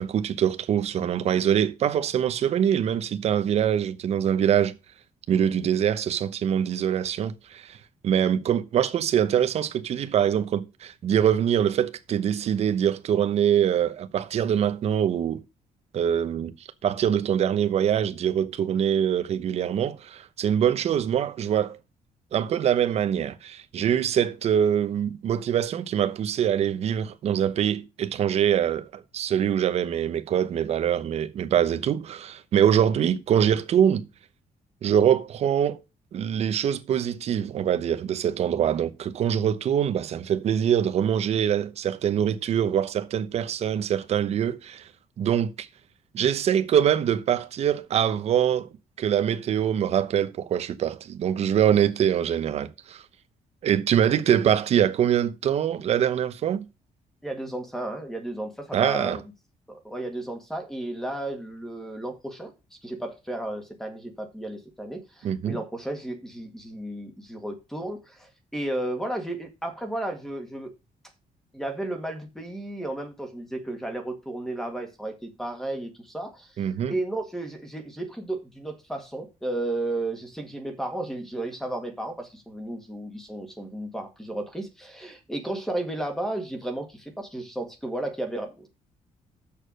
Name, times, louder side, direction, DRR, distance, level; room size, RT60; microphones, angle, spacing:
voice 1, 0.0-4.7 5.3-7.8 8.0-15.4 15.9-21.8 22.3-34.0 34.8-35.8 36.1-44.9 45.2-45.7 46.1-48.7 49.0-53.0 53.6-56.6 58.7-59.2 65.2-65.6 76.6-76.9, right 9 dB, 50° right, 0.9 m, -24 dB
voice 2, 57.2-59.3 59.7-62.5 62.8-70.7 71.5-88.7, right 1 dB, 5° left, 1.9 m, -33 dB
7.2 x 6.7 x 6.3 m
cardioid pair, 175°, 14 cm